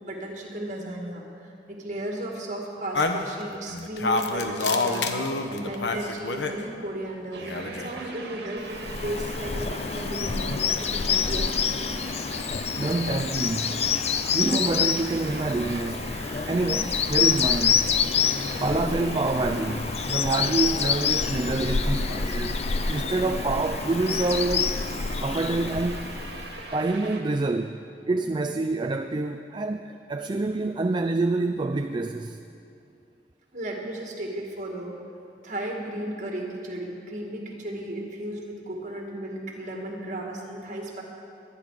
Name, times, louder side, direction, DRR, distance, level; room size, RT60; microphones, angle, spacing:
voice 1, 0.1-5.1 5.5-11.8 33.5-34.9 35.4-41.0, right 1 dB, 45° right, 2.2 m, -35 dB
sound 1, 2.9-6.6 7.4-8.1, left 3 dB, 75° left, 1.0 m, -27 dB
sound 2, 7.3-27.2, right 3 dB, 65° right, 1.8 m, -40 dB
Bird vocalization bird call bird song, 8.7-26.7, left 6 dB, 35° left, 0.4 m, -27 dB
voice 2, 12.8-13.9 14.3-16.1 16.5-17.9 18.6-24.9 25.2-26.2 26.7-27.8 28.1-32.4, right 2 dB, 25° right, 0.4 m, -27 dB
21.5 x 10.0 x 5.0 m
head